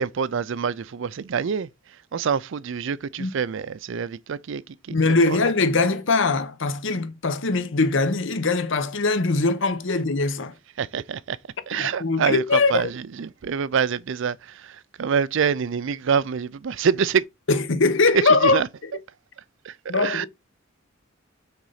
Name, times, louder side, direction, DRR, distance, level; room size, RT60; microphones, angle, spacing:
voice 1, 0.0-1.7 2.1-4.6 4.9-5.4 10.8-11.4 11.7-17.2 18.3-18.7 19.6-20.3, right 6 dB, 65° right, 0.4 m, -26 dB
voice 2, 4.9-10.5 11.7-12.9 17.5-18.6 19.9-20.3, left 3 dB, 65° left, 0.9 m, -21 dB
5.9 x 4.0 x 5.6 m
head